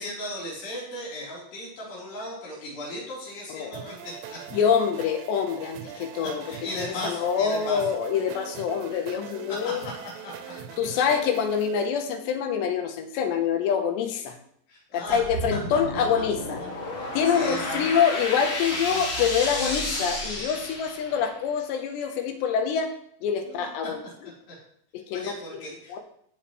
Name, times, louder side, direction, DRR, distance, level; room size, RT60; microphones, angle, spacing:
voice 1, 0.0-4.6 5.9-6.0 6.5-7.8 9.1-9.9 10.2-10.5 14.7-15.2 17.0-17.9 18.9-19.2 23.4-23.7 25.1-26.0, left 1 dB, 70° left, -6 dB, 6.0 m, -37 dB
voice 2, 3.5-3.8 4.5-6.4 6.8-9.9 10.8-14.4 14.9-16.6 17.1-22.9 23.2-24.0 24.9-25.3 25.9-26.0, left 7 dB, 90° left, 6 dB, 3.2 m, -26 dB
sound 1, 3.7-11.9, right 8 dB, 80° right, 3.0 m, -41 dB
sound 2, 15.1-21.4, left 1 dB, 40° left, 2.2 m, -32 dB
16.0 x 6.8 x 3.2 m, 0.67 s
omnidirectional pair, 5.0 m